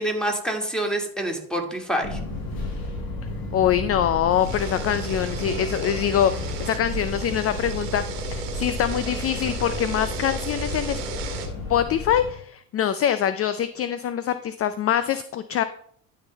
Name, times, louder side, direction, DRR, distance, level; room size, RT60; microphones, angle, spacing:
voice 1, 0.0-2.2, right 1 dB, ahead, 2 dB, 2.3 m, -27 dB
Fixed-wing aircraft airplane, 2.0-12.3, left 2 dB, 50° left, 2.8 m, -33 dB
voice 2, 3.5-11.0 11.7-15.6, left 10 dB, 30° left, 12 dB, 0.4 m, -24 dB
sound 1, 4.3-11.5, right 5 dB, 85° right, 1.5 m, -34 dB
11.5 x 4.0 x 4.1 m, 0.64 s
hypercardioid pair, 70°, 46 cm